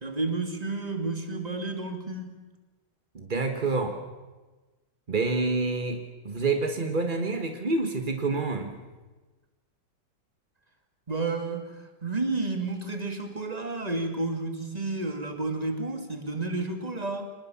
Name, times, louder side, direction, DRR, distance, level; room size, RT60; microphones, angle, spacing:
voice 1, 0.0-2.4 11.1-11.7 12.0-17.3, right 3 dB, 15° right, 5 dB, 1.9 m, -31 dB
voice 2, 3.1-4.0 5.1-8.8, right 3 dB, 55° right, 5 dB, 0.5 m, -28 dB
25.5 x 19.5 x 7.2 m, 1.2 s
omnidirectional pair, 3.4 m